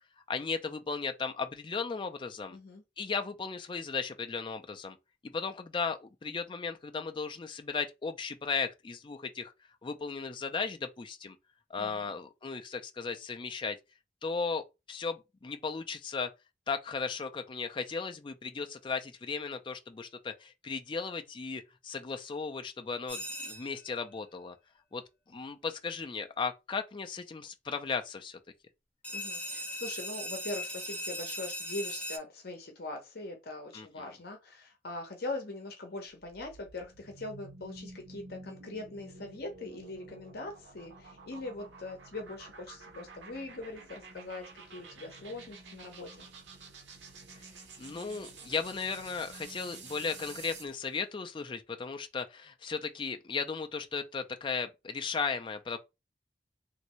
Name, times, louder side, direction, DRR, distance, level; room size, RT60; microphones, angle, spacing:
voice 1, 0.3-2.6 3.0-5.0 5.2-9.5 9.8-11.4 11.7-13.8 14.2-16.3 16.7-24.6 24.9-25.0 25.3-28.4 33.7-34.1 47.8-55.8, left 5 dB, 25° left, 0.4 m, -36 dB
voice 2, 2.5-2.8 11.8-12.1 29.1-46.3, left 2 dB, 60° left, 0.8 m, -42 dB
sound 1, 23.1-23.9 29.0-32.2, equal, 10° left, 1.1 m, -38 dB
sound 2, 36.1-50.8, right 3 dB, 85° right, 0.8 m, -50 dB
3.1 x 2.6 x 3.0 m
head